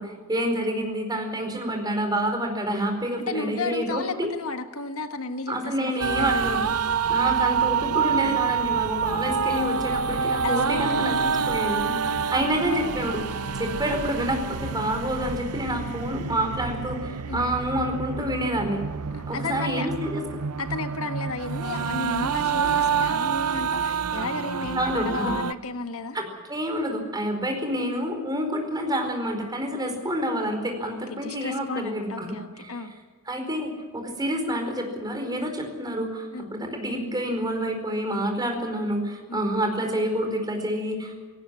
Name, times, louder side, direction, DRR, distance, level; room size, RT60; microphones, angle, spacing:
voice 1, 0.0-4.3 5.5-6.6 7.1-11.8 12.3-13.2 13.6-18.8 19.3-20.2 24.7-25.3 26.1-32.3 32.6-32.7 33.3-41.1, equal, 20° right, 4 dB, 4.6 m, -28 dB
voice 2, 3.2-6.3 10.4-11.2 11.9-12.3 17.3-17.5 19.1-19.9 20.6-26.2 30.9-32.9 36.3-36.5 39.3-39.4, left 3 dB, 70° left, 8 dB, 1.5 m, -33 dB
sound 1, 6.0-25.5, right 6 dB, 90° right, 0.7 m, -27 dB
18.5 x 18.0 x 9.9 m, 1.4 s
head